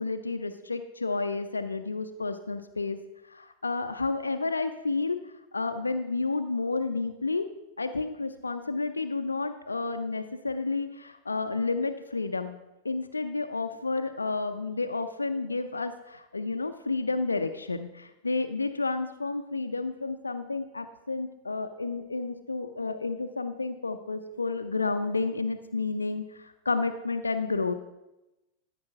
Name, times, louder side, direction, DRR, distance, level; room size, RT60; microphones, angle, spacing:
voice 1, 0.0-3.0 3.3-5.2 5.5-7.5 7.8-12.6 12.8-27.7, left 3 dB, 80° left, 8 dB, 0.5 m, -31 dB
13.0 x 5.2 x 5.7 m, 0.98 s
figure-of-eight pair, 90°, 0 cm